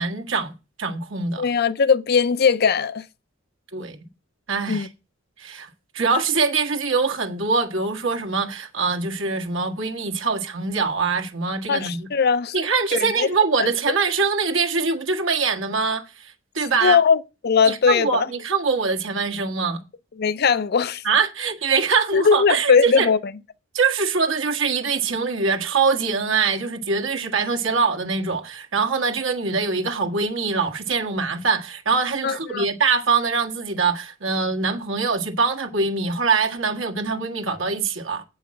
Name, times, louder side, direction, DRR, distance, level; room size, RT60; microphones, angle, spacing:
voice 1, 0.0-1.4 3.7-4.0 4.5-4.9 5.4-12.1 12.5-17.0 17.7-19.8 21.0-23.1 23.7-38.2, right 4 dB, 75° right, 1.5 m, -23 dB
voice 2, 1.4-3.0 4.7-4.9 11.7-12.5 12.9-13.3 13.6-13.7 16.8-18.3 20.2-21.0 22.1-23.2 32.2-32.7, left 6 dB, 50° left, 0.5 m, -19 dB
8.5 x 5.6 x 7.5 m
head